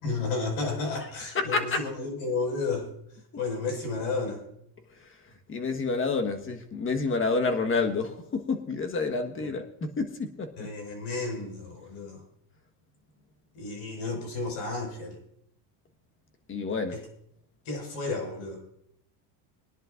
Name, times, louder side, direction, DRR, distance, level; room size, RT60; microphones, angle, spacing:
voice 1, 0.0-2.9 3.4-4.4 9.4-9.5 10.6-12.2 13.5-15.2 16.9-17.0 17.7-18.6, left 3 dB, 65° left, 2 dB, 5.8 m, -32 dB
voice 2, 1.3-1.8 5.0-5.1 5.5-10.7 16.5-17.0, left 4 dB, 25° left, 5 dB, 1.5 m, -29 dB
22.0 x 11.0 x 2.6 m, 0.72 s
supercardioid pair, 120°, 49 cm